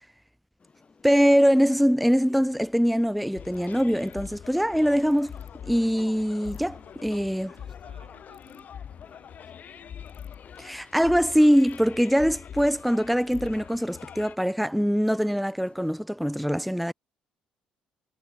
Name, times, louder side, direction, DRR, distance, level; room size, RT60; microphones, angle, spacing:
sound 1, 0.6-16.0, left 4 dB, 30° left, 2.7 m, -57 dB
voice 1, 1.0-5.3 5.6-7.5 10.6-16.9, equal, ahead, 0.4 m, -23 dB
sound 2, 3.4-14.4, left 8 dB, 45° left, 0.7 m, -43 dB
Ratchet pawl, 3.5-4.1 5.1-5.5 6.4-6.6 8.3-8.6 10.0-10.4 11.6-12.1 12.4-12.5 12.7-12.8 13.2-13.5, left 24 dB, 75° left, 2.3 m, -58 dB
voice 2, 6.8-10.1, right 4 dB, 90° right, 4.8 m, -61 dB
figure-of-eight pair, 45°, 4 cm